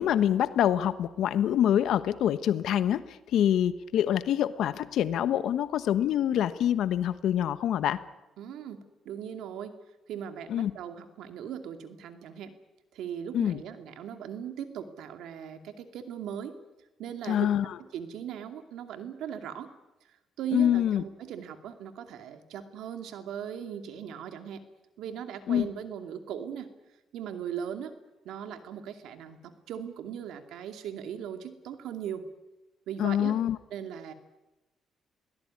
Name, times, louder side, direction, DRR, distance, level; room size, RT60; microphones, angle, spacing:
voice 1, 0.0-8.0 10.5-10.7 13.3-13.6 17.3-17.8 20.5-21.0 25.5-25.7 33.0-33.6, left 10 dB, 75° left, 13 dB, 1.1 m, -26 dB
voice 2, 8.4-9.7 10.1-12.5 12.9-16.5 17.0-17.5 17.9-19.7 20.4-24.6 25.0-26.7 27.1-27.9 28.2-32.2 32.9-33.4 33.7-34.1, right 8 dB, 85° right, 7 dB, 2.5 m, -38 dB
23.0 x 18.0 x 9.7 m, 1.0 s
cardioid pair, 90°, 0 cm